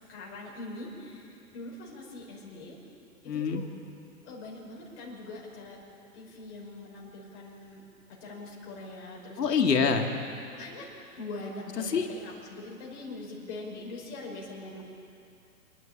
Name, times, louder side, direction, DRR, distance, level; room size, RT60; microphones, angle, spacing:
voice 1, 0.1-2.8 3.2-3.7 4.2-5.8 6.1-7.8 8.1-9.6 10.5-10.9 11.2-14.8, left 2 dB, 45° left, -3 dB, 5.6 m, -42 dB
voice 2, 3.3-3.6 9.4-10.1 11.9-12.0, left 5 dB, 85° left, 4 dB, 2.3 m, -25 dB
28.0 x 10.5 x 8.7 m, 2.7 s
hypercardioid pair, 130°, 47 cm